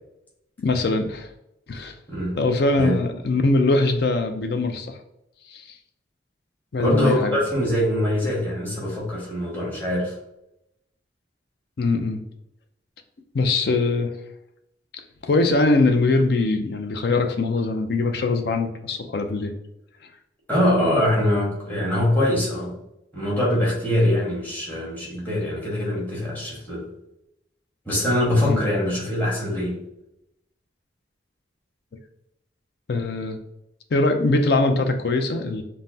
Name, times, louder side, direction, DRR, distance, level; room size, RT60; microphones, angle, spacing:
voice 1, 0.6-1.3 1.7-1.9 2.3-5.0 5.5-5.6 6.7-7.4 11.8-12.2 13.3-14.1 15.2-19.5 28.5-28.6 32.9-33.4 33.9-35.6, left 3 dB, 55° left, 6 dB, 0.4 m, -22 dB
voice 2, 6.8-10.1 20.5-22.7 23.1-26.9 27.8-29.8, left 1 dB, 10° left, -6 dB, 1.2 m, -23 dB
5.4 x 2.1 x 2.7 m, 0.84 s
head